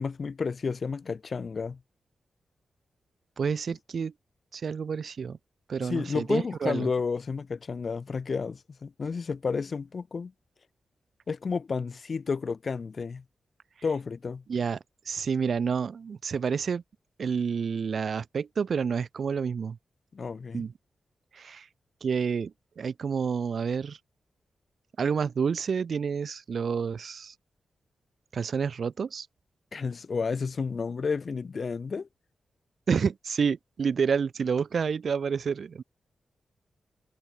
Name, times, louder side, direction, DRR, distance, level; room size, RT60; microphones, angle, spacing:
voice 1, 0.0-1.8 5.8-10.3 11.3-13.2 13.8-14.4 20.1-20.6 29.7-32.1, left 5 dB, 50° left, 2.9 m, -31 dB
voice 2, 3.4-4.1 4.5-5.4 5.7-6.9 14.5-14.8 15.1-16.8 17.2-19.8 20.5-20.7 21.3-21.7 22.0-24.0 25.0-27.3 28.3-29.3 32.9-35.8, right 6 dB, 65° right, 7.8 m, -29 dB
cardioid pair, 80°, 0 cm